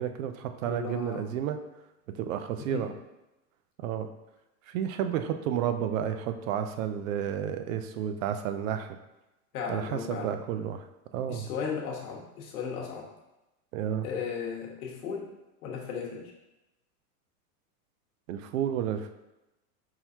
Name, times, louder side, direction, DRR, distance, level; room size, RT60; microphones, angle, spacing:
voice 1, 0.0-1.6 2.1-2.9 3.8-4.1 4.7-9.0 9.7-10.8 11.1-11.5 13.7-14.1 18.3-19.1, right 9 dB, 65° right, 8 dB, 0.5 m, -31 dB
voice 2, 0.6-1.3 2.6-2.9 9.5-10.4 11.3-13.1 14.0-16.3, left 6 dB, 85° left, -1 dB, 1.2 m, -36 dB
4.5 x 3.9 x 2.7 m, 0.97 s
supercardioid pair, 165°, 44 cm